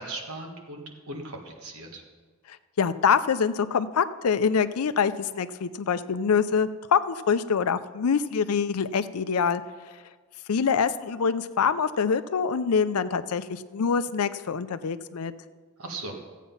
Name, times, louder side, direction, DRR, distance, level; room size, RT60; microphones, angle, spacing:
voice 1, 0.0-2.0 15.8-16.1, right 2 dB, 90° right, 2 dB, 1.7 m, -38 dB
voice 2, 2.5-9.6 10.5-15.3, left 6 dB, 85° left, 13 dB, 0.5 m, -25 dB
14.5 x 8.3 x 5.6 m, 1.5 s
head